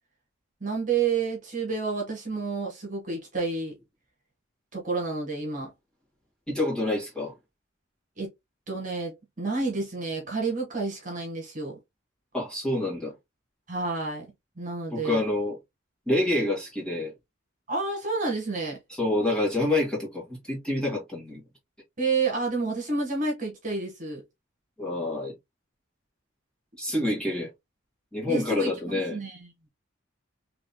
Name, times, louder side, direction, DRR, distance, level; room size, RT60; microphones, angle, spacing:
voice 1, 0.6-3.8 4.7-5.7 8.2-8.3 8.7-11.8 13.7-14.2 14.6-15.2 17.7-18.8 22.0-24.2 28.3-29.5, right 4 dB, 40° right, 1.7 m, -29 dB
voice 2, 6.5-7.3 12.3-13.1 14.9-15.6 16.1-17.1 18.9-21.4 24.8-25.3 26.8-27.5 28.1-29.2, left 2 dB, 5° left, 2.2 m, -27 dB
5.1 x 3.2 x 2.2 m
head